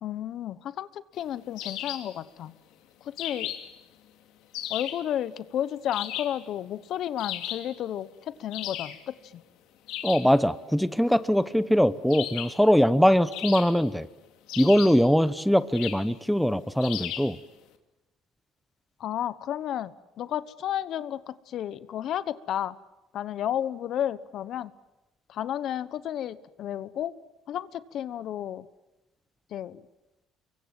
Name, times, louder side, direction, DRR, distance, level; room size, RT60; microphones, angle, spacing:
voice 1, 0.0-2.5 3.0-3.5 4.7-9.4 19.0-22.8 23.1-24.7 25.3-27.1 27.5-28.7 29.5-29.8, left 11 dB, 60° left, 16 dB, 1.1 m, -32 dB
sound 1, 1.6-2.1 3.2-3.8 4.5-5.1 5.9-6.4 7.2-7.7 8.5-9.0 9.9-10.3 12.1-12.6 13.3-14.0 14.5-15.1 15.7-16.1 16.8-17.4, left 12 dB, 85° left, 2.7 m, -35 dB
voice 2, 10.0-14.1 14.6-17.4, equal, ahead, 14 dB, 0.9 m, -22 dB
26.5 x 23.5 x 7.7 m, 0.99 s
cardioid pair, 125°, 0 cm